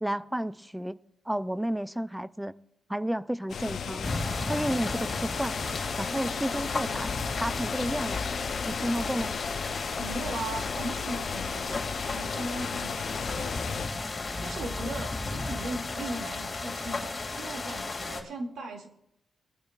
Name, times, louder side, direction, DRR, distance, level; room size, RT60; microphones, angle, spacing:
voice 1, 0.0-1.0 1.3-2.5 2.9-4.1 4.5-5.6 6.0-7.1 7.4-8.3 8.7-9.3, right 1 dB, 5° right, 0.4 m, -31 dB
sound 1, 3.5-13.9, left 7 dB, 55° left, 0.5 m, -35 dB
sound 2, 4.0-18.2, left 3 dB, 25° left, 2.1 m, -34 dB
voice 2, 10.0-18.9, right 2 dB, 75° right, 2.2 m, -39 dB
21.0 x 12.0 x 2.4 m
wide cardioid pair, 150°, 0 cm